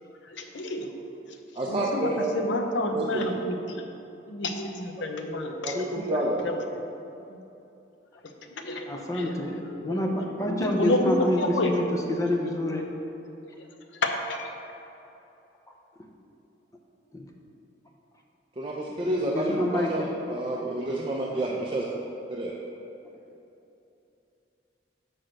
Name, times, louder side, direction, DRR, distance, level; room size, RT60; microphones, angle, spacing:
voice 1, 0.2-0.9 1.7-3.8 4.3-6.8 7.3-7.4 8.6-9.3 9.8-11.7 14.0-14.6, left 1 dB, 85° left, 4 dB, 0.7 m, -30 dB
voice 2, 1.6-2.3 2.9-3.3 5.6-6.4 18.6-21.8 22.3-22.5, right 1 dB, 30° right, -3 dB, 0.5 m, -29 dB
voice 3, 8.9-12.9 17.1-17.3 19.2-20.1 21.3-21.4, left 1 dB, 20° left, 1 dB, 0.7 m, -28 dB
6.0 x 4.7 x 6.4 m, 2.9 s
head